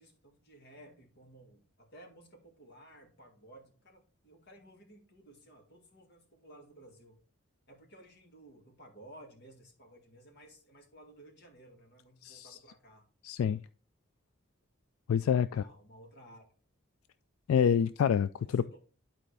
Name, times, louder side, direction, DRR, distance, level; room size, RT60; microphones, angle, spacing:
voice 1, 0.0-7.2 7.7-13.1 15.3-16.5 18.4-18.8, right 1 dB, 55° left, 2.0 m, -56 dB
voice 2, 12.2-12.6 13.2-13.6 15.1-15.6 17.5-18.6, left 8 dB, 85° left, 0.3 m, -27 dB
11.5 x 4.5 x 3.3 m
head